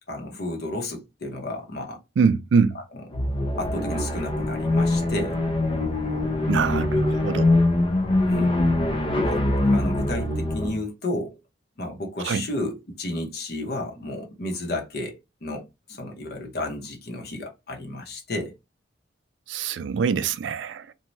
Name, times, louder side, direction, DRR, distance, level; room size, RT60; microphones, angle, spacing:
voice 1, 0.1-2.0 3.6-5.4 8.2-8.6 9.2-9.4 9.7-11.4 11.8-18.5, left 1 dB, 55° left, 0.8 m, -32 dB
voice 2, 2.2-2.8 6.5-7.6 12.2-12.4 19.5-20.9, right 5 dB, 80° right, 0.4 m, -24 dB
sound 1, 3.1-10.8, left 2 dB, 30° left, 0.5 m, -23 dB
2.7 x 2.2 x 3.0 m
head